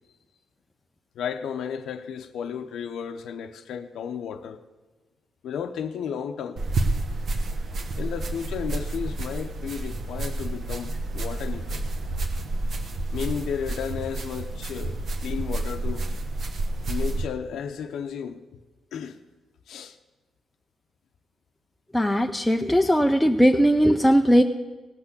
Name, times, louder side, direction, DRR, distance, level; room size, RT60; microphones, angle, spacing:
voice 1, 1.1-4.6 5.4-6.6 8.0-11.8 13.1-16.1 16.9-18.4 18.9-19.2 19.7-20.0, left 7 dB, 85° left, 0.7 m, -33 dB
sound 1, 6.6-17.3, right 2 dB, 50° right, 1.1 m, -29 dB
voice 2, 21.9-24.4, equal, 5° left, 0.5 m, -19 dB
17.5 x 5.9 x 8.1 m
cardioid pair, 125°, 0 cm